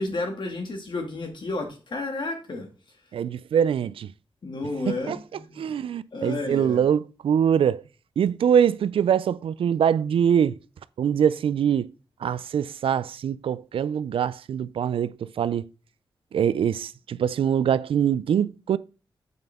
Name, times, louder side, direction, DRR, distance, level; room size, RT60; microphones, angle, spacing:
voice 1, 0.0-2.7 4.4-5.7 6.1-6.8, left 2 dB, 60° left, 2.4 m, -31 dB
voice 2, 3.1-4.1 4.9-5.2 5.6-7.8 8.2-10.6 11.0-11.9 12.2-15.6 16.3-18.8, right 8 dB, 85° right, 0.4 m, -23 dB
7.8 x 5.4 x 3.6 m
cardioid pair, 65°, 9 cm